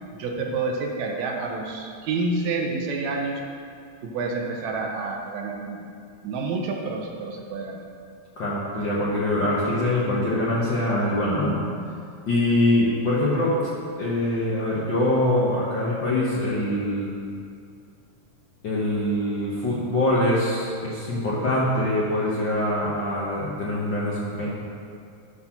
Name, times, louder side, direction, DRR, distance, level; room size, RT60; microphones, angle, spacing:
voice 1, 0.2-3.4 4.0-5.8 6.2-7.8, right 3 dB, 75° right, 1 dB, 2.1 m, -28 dB
voice 2, 8.4-11.6 12.3-13.6 14.0-17.1 18.6-24.5, left 1 dB, 55° left, -6 dB, 1.3 m, -24 dB
12.0 x 4.1 x 5.8 m, 2.3 s
omnidirectional pair, 3.4 m